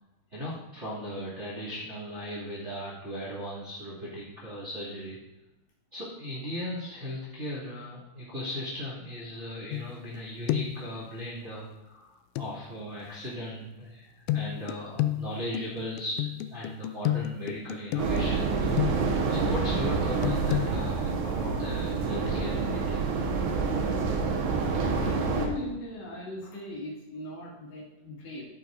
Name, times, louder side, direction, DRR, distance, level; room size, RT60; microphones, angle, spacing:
voice 1, 0.3-5.2 5.9-18.9 19.3-23.1, equal, 30° right, -6 dB, 1.3 m, -37 dB
sound 1, 9.7-10.2 10.5-10.9 12.4-12.5 14.3-19.3 20.2-20.7, left 13 dB, 85° left, 2.6 m, -31 dB
sound 2, 18.0-25.5, right 4 dB, 70° right, 3.1 m, -27 dB
voice 2, 24.9-28.5, left 2 dB, 65° left, -5 dB, 4.5 m, -38 dB
13.5 x 8.6 x 2.6 m, 0.99 s
omnidirectional pair, 5.6 m